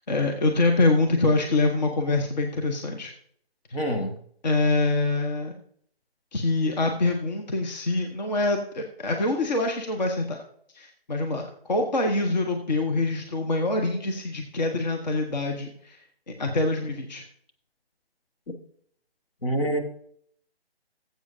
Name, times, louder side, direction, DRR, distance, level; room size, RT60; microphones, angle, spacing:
voice 1, 0.0-3.1 4.4-5.5 6.3-10.4 10.7-17.2, left 2 dB, 45° left, 3 dB, 1.1 m, -25 dB
voice 2, 3.7-4.2 19.4-19.8, right 1 dB, 65° left, 3 dB, 1.8 m, -26 dB
18.0 x 7.8 x 2.7 m, 0.63 s
figure-of-eight pair, 145°, 31 cm